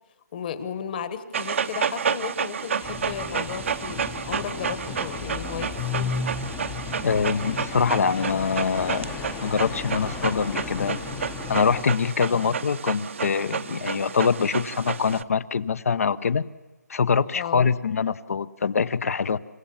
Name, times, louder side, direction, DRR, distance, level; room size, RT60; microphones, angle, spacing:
voice 1, 0.3-6.3 12.3-12.6 17.3-17.7, left 8 dB, 30° left, 12 dB, 1.4 m, -34 dB
Dog, 1.3-15.2, right 7 dB, 45° right, 0.8 m, -31 dB
sound 1, 2.8-11.8, left 6 dB, 10° left, 0.8 m, -34 dB
voice 2, 7.0-9.1 9.4-11.0 11.5-16.5 16.9-19.4, left 6 dB, 55° left, 17 dB, 0.9 m, -24 dB
28.0 x 16.5 x 7.3 m, 1.2 s
hypercardioid pair, 160°, 9 cm